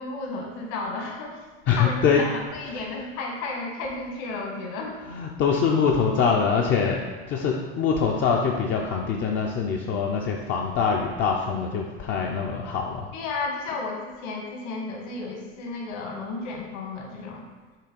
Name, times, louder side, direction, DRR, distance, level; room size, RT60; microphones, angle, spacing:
voice 1, 0.0-1.4 1.8-5.0 13.1-17.4, left 3 dB, 55° left, 0 dB, 1.4 m, -33 dB
voice 2, 1.7-2.2 5.1-7.0 7.3-13.1, left 6 dB, 35° left, 0 dB, 0.5 m, -24 dB
5.6 x 3.3 x 5.2 m, 1.3 s
supercardioid pair, 120°, 35 cm